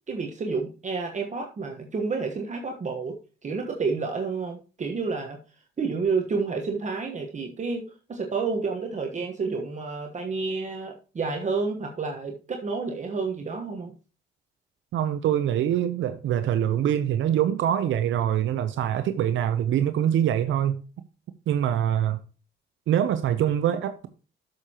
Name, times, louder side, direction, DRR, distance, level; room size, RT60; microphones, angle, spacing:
voice 1, 0.1-5.4 5.8-13.9, right 4 dB, 35° right, 1.2 m, -30 dB
voice 2, 14.9-20.8 21.5-22.2 22.9-24.1, right 10 dB, 75° right, 0.7 m, -24 dB
12.0 x 6.5 x 2.9 m
cardioid pair, 90°, 20 cm